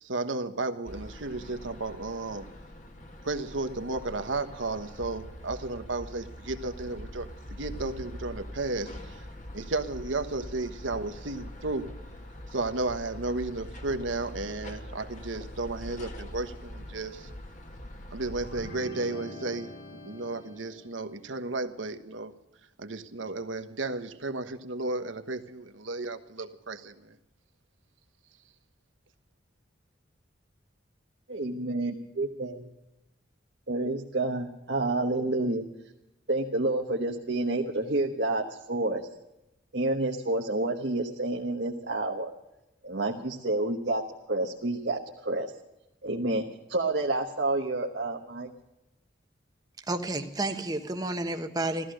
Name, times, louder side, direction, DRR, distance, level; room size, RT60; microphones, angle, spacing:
voice 1, 0.0-2.5 3.2-9.2 9.5-11.9 12.5-17.3 18.1-22.3 22.8-27.2, right 2 dB, 80° right, 8 dB, 1.2 m, -33 dB
sound 1, 0.8-18.8, left 1 dB, 40° left, 1.8 m, -43 dB
sound 2, 18.4-21.2, left 2 dB, 60° left, 3.0 m, -45 dB
voice 2, 31.3-32.6 33.7-35.6 36.3-39.1 39.7-42.3 42.8-44.0 44.3-45.5 46.0-46.4 46.7-48.5, right 2 dB, 60° right, 1 dB, 1.2 m, -29 dB
voice 3, 49.9-51.9, right 2 dB, 20° right, 6 dB, 1.1 m, -31 dB
15.0 x 14.0 x 6.3 m, 0.90 s
head